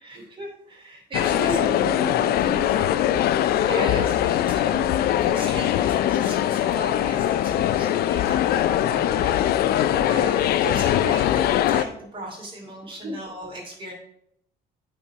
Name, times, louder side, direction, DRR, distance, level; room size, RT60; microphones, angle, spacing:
voice 1, 0.0-1.6 3.5-13.9, right 1 dB, 30° right, 0 dB, 2.7 m, -36 dB
sound 1, 1.1-11.8, left 11 dB, 65° left, 0.4 m, -22 dB
voice 2, 1.3-3.4 9.7-10.3 12.9-13.2, equal, 65° right, 0 dB, 1.3 m, -34 dB
8.8 x 4.4 x 4.6 m, 0.73 s
cardioid pair, 110°, 17 cm